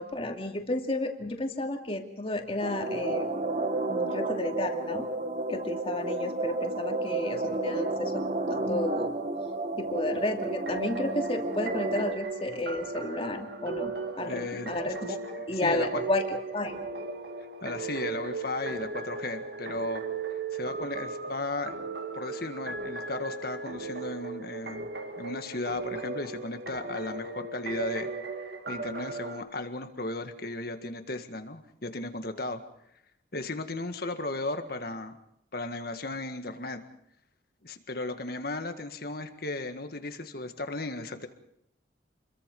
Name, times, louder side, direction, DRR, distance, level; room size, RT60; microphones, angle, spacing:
voice 1, 0.0-3.3 3.9-5.1 5.5-9.1 9.8-15.2 15.5-16.7, left 2 dB, 30° left, 4 dB, 2.5 m, -32 dB
sound 1, 2.6-12.1, right 2 dB, 40° right, 1.9 m, -31 dB
sound 2, 10.4-29.4, right 3 dB, 60° right, 1.8 m, -37 dB
voice 2, 14.2-14.9 15.4-16.0 17.6-20.0 20.3-21.8 22.1-24.9 25.2-28.1 28.4-32.6 33.3-35.2 35.5-36.8 37.6-41.3, left 2 dB, 50° left, 7 dB, 1.8 m, -35 dB
28.5 x 22.5 x 5.4 m, 0.74 s
head